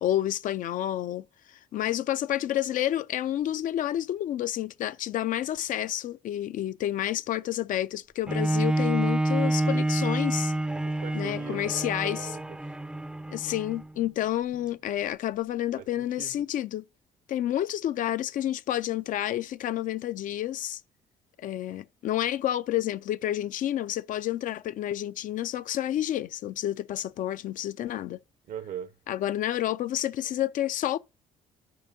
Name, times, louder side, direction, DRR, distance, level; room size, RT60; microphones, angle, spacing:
voice 1, 0.0-10.5 11.1-12.3 13.3-16.8 17.3-20.8 21.4-28.2 29.1-31.0, left 12 dB, 60° left, 0.4 m, -29 dB
Bowed string instrument, 8.3-13.9 14.5-14.6, right 1 dB, 5° right, 0.4 m, -28 dB
voice 2, 10.7-12.8 15.8-16.4 28.5-28.9, right 9 dB, 60° right, 0.7 m, -41 dB
12.0 x 5.0 x 2.7 m
supercardioid pair, 70°, 16 cm